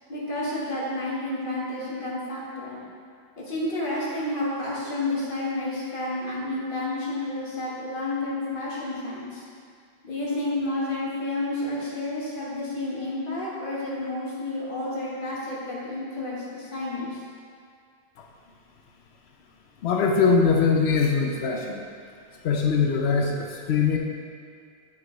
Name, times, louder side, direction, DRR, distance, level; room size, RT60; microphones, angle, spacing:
voice 1, 0.1-2.8 3.4-9.4 10.0-17.2, left 2 dB, 55° left, -7 dB, 1.7 m, -30 dB
voice 2, 19.8-21.8 22.4-24.0, left 5 dB, 80° left, 1 dB, 0.9 m, -22 dB
6.4 x 6.0 x 3.9 m, 2.2 s
omnidirectional pair, 1.1 m